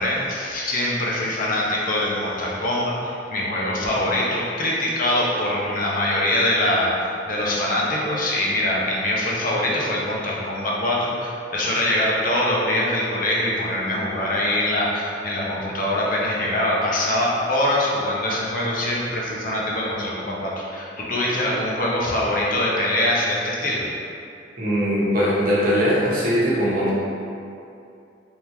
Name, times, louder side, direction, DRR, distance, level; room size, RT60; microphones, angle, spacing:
voice 1, 0.0-23.9, left 1 dB, 50° left, -4 dB, 0.7 m, -23 dB
voice 2, 24.6-26.9, equal, 50° right, -7 dB, 1.0 m, -20 dB
3.6 x 3.4 x 2.9 m, 2.5 s
head